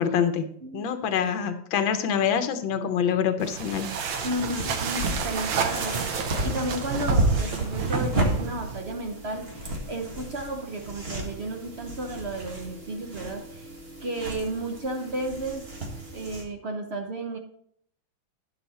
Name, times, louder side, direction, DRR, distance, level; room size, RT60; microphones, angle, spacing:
voice 1, 0.0-0.5 0.7-3.9, left 8 dB, 80° left, 9 dB, 1.6 m, -25 dB
sound 1, 3.4-9.0, right 6 dB, 75° right, 1.5 m, -31 dB
sound 2, 4.2-16.4, right 1 dB, 35° right, 1.6 m, -32 dB
voice 2, 4.2-13.7 14.0-15.6 16.1-17.4, right 1 dB, 50° right, 4 dB, 0.7 m, -33 dB
9.8 x 6.8 x 4.1 m, 0.66 s
omnidirectional pair, 2.1 m